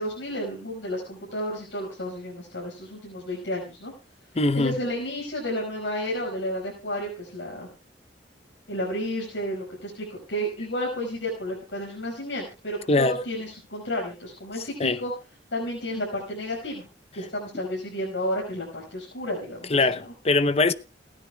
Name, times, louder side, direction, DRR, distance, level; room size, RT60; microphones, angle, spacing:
voice 1, 0.0-3.9 4.5-7.7 8.7-15.1 15.5-16.8 17.1-20.1, equal, 90° left, 5.4 m, -32 dB
voice 2, 4.4-4.8 12.9-13.2 14.8-15.0 19.7-20.7, left 2 dB, 35° left, 0.7 m, -22 dB
29.0 x 9.8 x 2.3 m
head